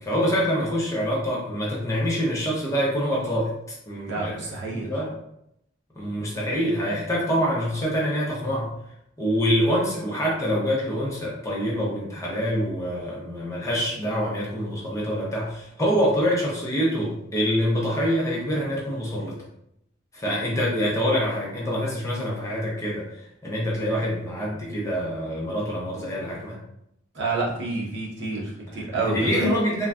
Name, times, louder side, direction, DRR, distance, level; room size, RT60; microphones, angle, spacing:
voice 1, 0.0-4.3 4.7-5.1 6.0-8.7 9.2-19.4 20.1-26.6 28.9-29.9, equal, 15° left, -4 dB, 0.6 m, -25 dB
voice 2, 4.1-4.9 27.1-29.5, right 3 dB, 60° right, -4 dB, 0.9 m, -29 dB
3.1 x 2.2 x 2.4 m, 0.78 s
head